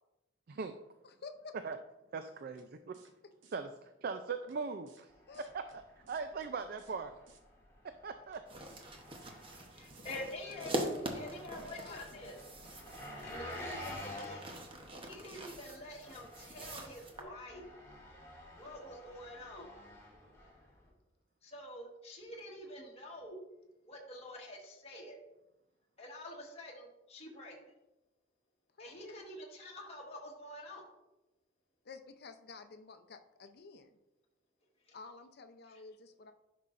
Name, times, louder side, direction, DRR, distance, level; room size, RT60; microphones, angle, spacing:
voice 1, 1.0-1.5 5.3-5.5 10.7-12.3 28.8-29.2 31.8-33.9 34.9-36.3, left 4 dB, 55° left, 8 dB, 0.6 m, -51 dB
voice 2, 2.1-3.0 3.5-5.1 5.5-7.1 8.0-8.4, right 5 dB, 50° right, 8 dB, 0.4 m, -40 dB
sound 1, 2.6-2.7 2.9-3.1 3.4-3.6 4.5-4.6 4.9-5.0 5.3-5.8 6.1-6.5 6.8-7.0 7.3-7.4 8.3-8.4 8.7-8.9 9.2-9.6 9.9-10.0, right 5 dB, 85° right, 0.9 m, -63 dB
Engine, 5.1-20.9, left 1 dB, 15° left, 2.2 m, -51 dB
sound 2, 8.5-17.2, right 1 dB, 30° right, 0.9 m, -43 dB
voice 3, 9.7-10.7 11.1-12.4 13.2-14.5 15.0-17.6 18.5-19.8 21.4-23.4 23.8-25.2 26.0-27.7 28.8-30.9 34.9-35.0 35.7-35.8, left 1 dB, 35° left, -2 dB, 1.4 m, -47 dB
10.5 x 5.5 x 2.5 m, 0.96 s
head